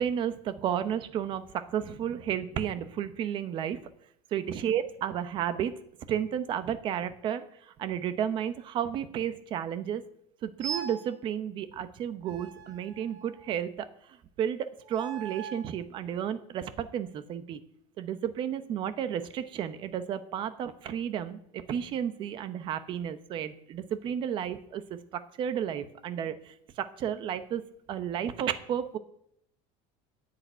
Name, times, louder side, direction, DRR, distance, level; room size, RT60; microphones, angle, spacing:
voice 1, 0.0-3.8 4.3-5.8 6.1-10.0 10.4-17.6 18.0-27.6 27.9-29.0, right 9 dB, 30° right, 12 dB, 0.9 m, -32 dB
sound 1, 10.6-11.1 12.3-13.5 14.8-15.7, right 7 dB, 80° right, 3.9 m, -40 dB
10.5 x 8.7 x 9.1 m, 0.71 s
cardioid pair, 170°, 15 cm